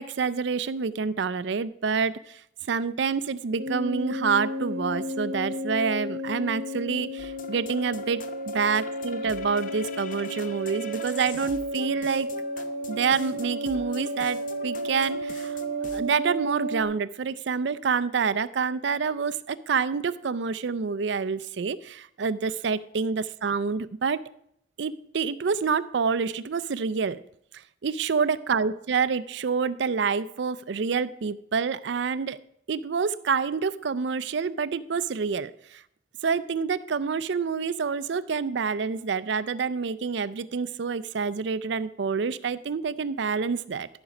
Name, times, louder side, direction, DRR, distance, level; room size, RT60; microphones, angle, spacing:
voice 1, 0.0-2.4 2.7-12.3 12.6-15.6 15.9-24.2 24.8-27.2 27.8-32.4 32.7-35.8 36.2-43.9, right 5 dB, 65° right, 15 dB, 0.4 m, -27 dB
sound 1, 3.6-16.8, equal, 90° right, 1.0 m, -33 dB
sound 2, 7.2-16.0, left 5 dB, 45° left, 0.7 m, -44 dB
13.5 x 6.0 x 5.0 m, 0.71 s
head